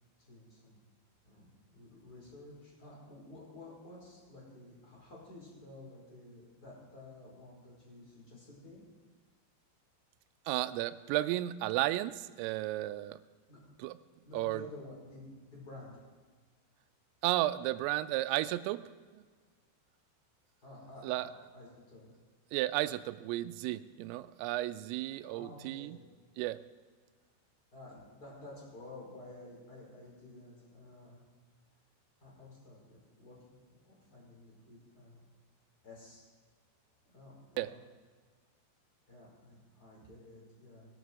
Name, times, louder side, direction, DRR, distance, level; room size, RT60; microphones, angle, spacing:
voice 1, 0.3-0.8 1.2-8.8 13.5-13.6 14.2-15.9 20.6-22.1 25.3-26.0 27.7-31.2 32.2-33.6 33.8-35.3 35.8-36.2 37.0-37.8 39.1-40.9, left 2 dB, 20° left, -4 dB, 5.1 m, -52 dB
voice 2, 10.5-13.2 13.8-14.0 14.3-14.6 17.2-18.8 19.1-19.2 21.0-21.3 22.5-26.0 26.4-26.6 37.6-37.7, right 16 dB, 85° right, 14 dB, 3.2 m, -33 dB
20.5 x 11.5 x 4.7 m, 1.5 s
omnidirectional pair, 5.8 m